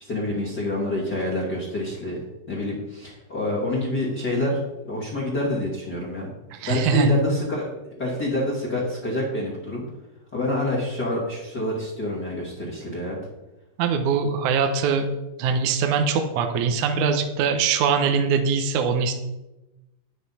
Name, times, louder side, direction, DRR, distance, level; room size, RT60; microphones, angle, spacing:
voice 1, 0.1-2.2 2.5-4.6 4.8-6.3 6.7-9.8 10.3-13.2, left 1 dB, 30° left, -4 dB, 2.5 m, -27 dB
voice 2, 6.5-7.2 13.8-15.1 15.4-19.1, right 5 dB, 70° right, 5 dB, 2.0 m, -22 dB
11.5 x 10.0 x 4.2 m, 1.0 s
omnidirectional pair, 4.4 m